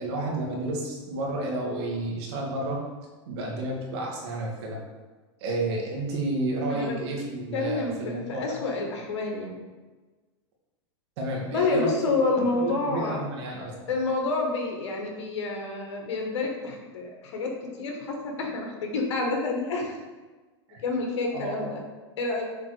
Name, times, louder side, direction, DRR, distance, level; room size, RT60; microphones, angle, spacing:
voice 1, 0.0-2.8 3.3-4.8 5.4-8.6 11.2-11.9 12.6-13.7 20.7-20.8 21.3-21.7, right 2 dB, 65° right, -1 dB, 2.0 m, -31 dB
voice 2, 7.5-9.6 11.5-13.2 13.9-19.9 20.8-21.8 22.2-22.4, left 3 dB, 75° left, 1 dB, 1.7 m, -28 dB
6.9 x 3.5 x 4.9 m, 1.3 s
hypercardioid pair, 120°, 15 cm